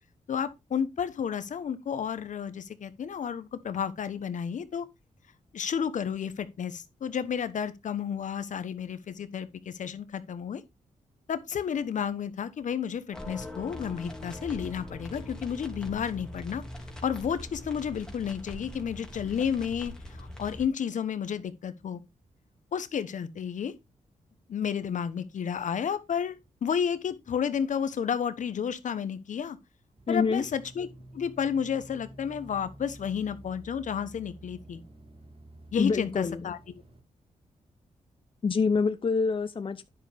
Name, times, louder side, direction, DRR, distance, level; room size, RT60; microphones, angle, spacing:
voice 1, 0.3-4.9 5.5-10.6 11.3-16.6 17.0-22.0 22.7-23.7 24.5-29.6 30.1-30.9 31.1-34.8 35.7-36.6, left 7 dB, 70° left, 1.0 m, -31 dB
sound 1, 13.1-20.7, left 1 dB, 5° left, 2.6 m, -42 dB
sound 2, 30.0-37.0, right 1 dB, 45° right, 2.3 m, -50 dB
voice 2, 30.1-30.4 35.8-36.5 38.4-39.9, left 5 dB, 40° left, 0.7 m, -26 dB
9.9 x 6.8 x 3.5 m
cardioid pair, 70°, 13 cm